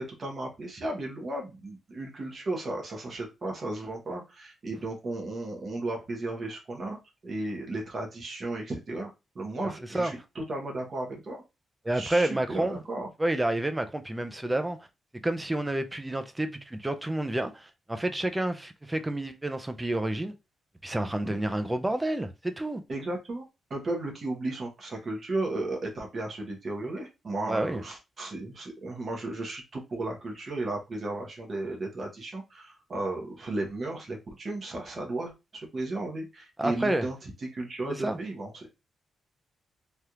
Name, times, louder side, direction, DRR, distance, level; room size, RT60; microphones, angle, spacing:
voice 1, 0.0-7.0 7.2-11.4 11.9-13.1 21.2-21.4 22.9-23.4 23.7-38.7, right 2 dB, 35° right, 0.9 m, -34 dB
voice 2, 11.8-12.8 13.2-14.8 15.2-20.3 20.8-22.8 27.5-27.8 36.6-37.1 37.9-38.2, right 1 dB, 10° right, 0.3 m, -29 dB
3.3 x 2.3 x 2.7 m
wide cardioid pair, 170°, 0 cm